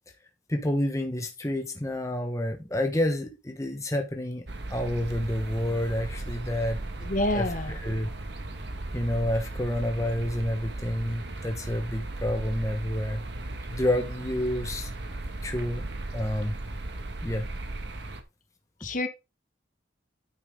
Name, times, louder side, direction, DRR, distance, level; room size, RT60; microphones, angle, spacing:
voice 1, 0.5-6.8 7.3-8.1 8.9-13.2 13.7-14.9 15.4-15.9 16.1-16.6 17.2-17.5, left 1 dB, 15° left, 1.0 m, -29 dB
sound 1, 4.5-18.2, right 2 dB, 60° right, 1.4 m, -36 dB
voice 2, 7.0-7.7 18.8-19.1, left 1 dB, 45° left, 1.1 m, -27 dB
9.5 x 5.7 x 3.7 m
head